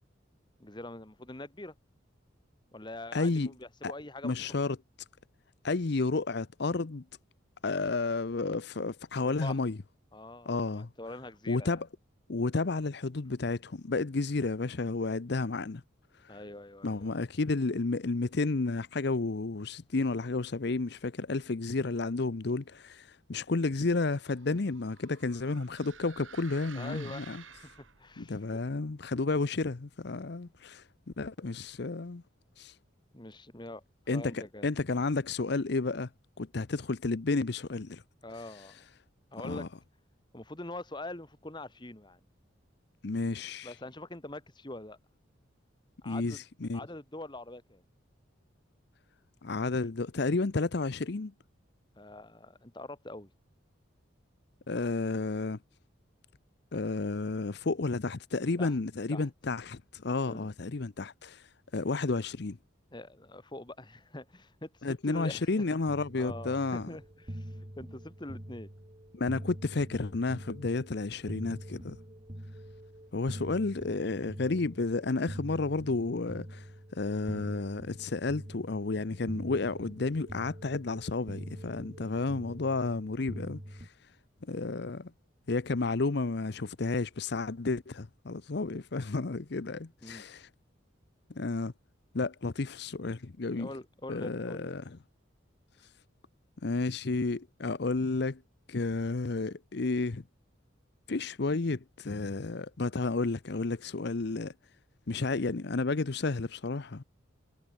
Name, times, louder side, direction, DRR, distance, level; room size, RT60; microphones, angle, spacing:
voice 1, 0.6-1.8 2.7-4.3 9.2-9.6 10.1-11.8 16.3-17.3 26.7-28.6 33.1-33.8 34.1-34.7 38.2-38.8 39.3-39.7 40.3-42.2 43.6-45.0 46.0-46.4 46.7-47.8 52.0-53.3 58.6-58.7 59.1-59.3 60.3-60.5 62.9-65.5 66.2-68.7 90.0-90.3 93.5-94.8, left 2 dB, 25° left, 1.7 m, -44 dB
voice 2, 3.1-3.5 3.8-3.9 4.2-4.8 5.6-7.0 7.6-9.8 10.5-10.9 11.5-11.9 12.3-15.8 16.2-16.4 16.8-27.4 28.2-32.2 32.6-32.8 34.1-36.1 36.4-38.0 38.5-38.8 39.4-39.7 43.0-43.8 46.1-46.8 49.4-51.3 54.7-55.6 56.7-62.6 64.8-66.9 69.1-72.0 73.1-83.9 84.5-85.1 85.5-90.5 91.3-91.7 92.1-93.7 94.1-94.8 96.6-98.4 98.7-100.2 101.1-104.5 105.1-107.0, left 3 dB, 55° left, 0.7 m, -32 dB
sound 1, 23.7-28.2, right 7 dB, 80° right, 3.5 m, -52 dB
sound 2, 65.9-83.9, equal, 30° right, 3.2 m, -44 dB
head